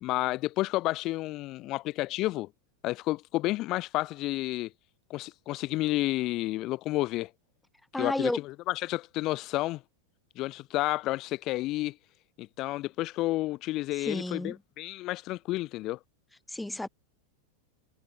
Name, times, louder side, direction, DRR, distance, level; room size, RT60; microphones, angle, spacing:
voice 1, 0.0-2.5 2.8-4.7 5.1-7.3 8.0-9.8 10.4-12.0 12.4-16.0, left 18 dB, 40° left, 1.8 m, -31 dB
voice 2, 7.9-8.4 14.0-14.6 16.5-16.9, left 1 dB, 5° left, 0.9 m, -31 dB
figure-of-eight pair, 90°, 0 cm